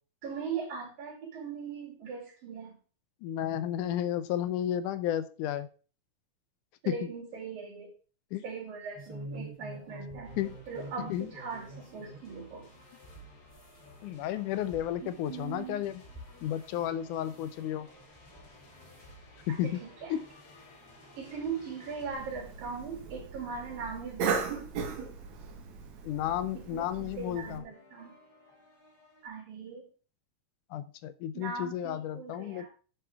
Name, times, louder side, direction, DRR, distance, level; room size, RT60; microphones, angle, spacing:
voice 1, 0.2-2.8 6.8-7.9 8.4-10.3 10.7-12.7 15.0-15.9 19.5-20.2 21.2-24.7 26.5-28.2 29.2-29.9 31.3-32.7, right 5 dB, 90° right, -1 dB, 5.3 m, -40 dB
voice 2, 3.2-5.7 6.9-7.0 8.3-8.4 10.4-10.6 11.1-11.3 14.0-15.9 16.4-17.9 19.5-19.8 20.1-20.3 26.0-27.6 30.7-32.7, left 11 dB, 75° left, 14 dB, 2.0 m, -32 dB
sound 1, 8.9-12.3 12.7-16.9 17.2-17.6 18.1-18.5 18.8-19.1 19.7-19.8 20.1-20.2 21.4-21.5 22.2-23.0 24.2-24.4 24.7-24.8 25.2-25.3, right 1 dB, 5° right, 3.4 m, -47 dB
sound 2, 10.2-25.2 27.0-29.3, equal, 40° left, 4.3 m, -55 dB
Cough, 22.1-27.6, right 5 dB, 60° right, 2.5 m, -37 dB
10.0 x 9.4 x 3.6 m, 0.37 s
omnidirectional pair, 3.9 m